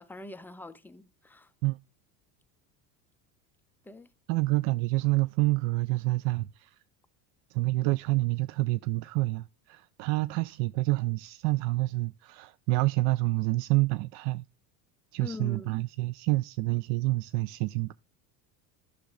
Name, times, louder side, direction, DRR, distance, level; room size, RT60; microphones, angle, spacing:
voice 1, 0.0-1.5 3.8-4.1 15.2-15.7, left 3 dB, 5° left, 0.3 m, -43 dB
voice 2, 4.3-6.8 7.5-14.4 15.1-17.9, right 20 dB, 60° right, 0.5 m, -28 dB
11.5 x 6.6 x 2.4 m
hypercardioid pair, 90°, 48 cm